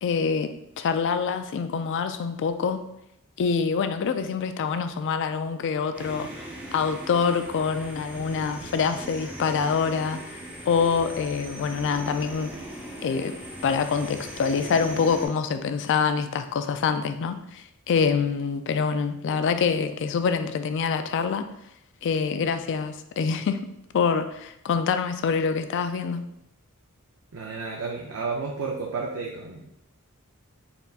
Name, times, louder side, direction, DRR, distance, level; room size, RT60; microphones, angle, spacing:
voice 1, 0.0-2.8 3.4-10.2 10.7-12.5 13.0-13.3 13.6-21.5 22.0-23.6 23.9-26.2, left 5 dB, 55° left, 9 dB, 0.3 m, -25 dB
sound 1, 5.9-15.3, right 1 dB, 10° right, 0.7 m, -39 dB
voice 2, 27.3-29.8, right 4 dB, 65° right, -1 dB, 0.5 m, -32 dB
4.3 x 4.0 x 2.4 m, 0.79 s
head